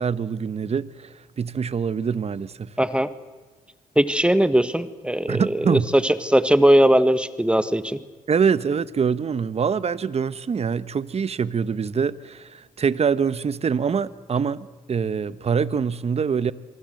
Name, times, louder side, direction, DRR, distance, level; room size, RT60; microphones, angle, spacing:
voice 1, 0.0-2.7 5.3-5.9 8.3-16.5, right 6 dB, 45° right, 1.2 m, -24 dB
voice 2, 2.8-3.1 3.9-8.0, right 1 dB, 5° right, 1.5 m, -19 dB
25.5 x 23.0 x 7.9 m
cardioid pair, 65°, 15 cm